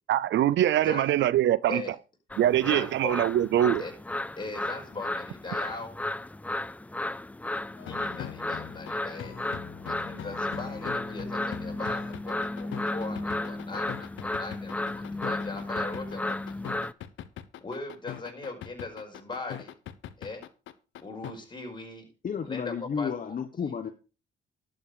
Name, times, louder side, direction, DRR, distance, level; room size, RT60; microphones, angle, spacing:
voice 1, 0.1-1.8 2.4-3.8, right 12 dB, 70° right, 0.5 m, -23 dB
sound 1, 2.3-16.9, left 2 dB, 5° left, 0.4 m, -34 dB
voice 2, 2.6-3.2 3.8-3.9 4.4-6.0 7.8-9.4 9.9-16.6 17.6-19.7 20.2-20.4 21.0-22.1 22.4-23.1, left 3 dB, 25° left, 5.0 m, -39 dB
sound 2, 7.8-21.3, left 11 dB, 80° left, 1.0 m, -41 dB
voice 3, 22.2-23.9, left 6 dB, 40° left, 1.1 m, -32 dB
12.0 x 7.7 x 5.0 m
cardioid pair, 90°, 20 cm